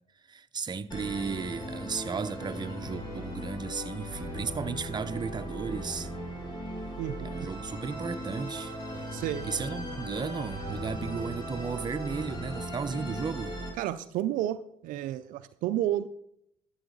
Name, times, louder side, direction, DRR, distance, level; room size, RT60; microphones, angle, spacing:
voice 1, 0.3-6.1 7.2-8.7 9.4-13.5, right 5 dB, 30° right, 0.7 m, -34 dB
Musical instrument, 0.9-13.7, equal, 30° left, 4.2 m, -38 dB
voice 2, 7.0-7.5 9.1-9.5 13.8-16.1, right 12 dB, 70° right, 0.5 m, -31 dB
12.5 x 7.9 x 4.0 m
hypercardioid pair, 60°, 14 cm